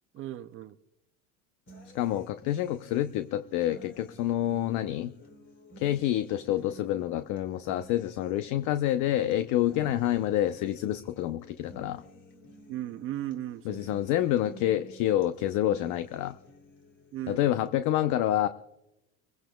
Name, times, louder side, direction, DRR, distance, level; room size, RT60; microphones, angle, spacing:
voice 1, 0.1-0.8 12.7-14.0 17.1-17.4, right 13 dB, 35° right, 12 dB, 0.5 m, -36 dB
sound 1, 1.7-17.7, equal, 30° left, 2.8 m, -53 dB
voice 2, 1.9-5.1 5.8-12.0 13.6-16.4 17.3-18.5, left 12 dB, 50° left, 10 dB, 0.7 m, -28 dB
24.5 x 16.5 x 2.3 m, 0.91 s
supercardioid pair, 125°, 39 cm